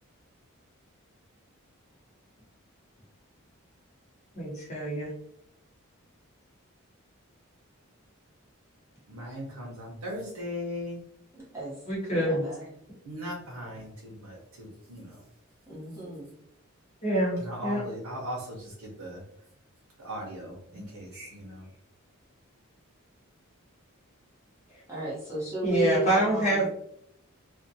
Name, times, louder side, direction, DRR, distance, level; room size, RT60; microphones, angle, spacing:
voice 1, 4.4-5.1 11.9-12.5 17.0-17.8 20.8-20.9 25.6-26.7, right 1 dB, 35° left, -5 dB, 1.0 m, -26 dB
voice 2, 9.1-11.0 13.0-15.2 17.4-19.2 20.0-21.6, equal, 85° right, -3 dB, 0.7 m, -38 dB
voice 3, 11.3-11.7 12.1-12.6 15.7-16.3 21.1-21.3 24.9-26.7, right 2 dB, 15° right, -7 dB, 0.9 m, -34 dB
2.5 x 2.2 x 2.6 m, 0.71 s
head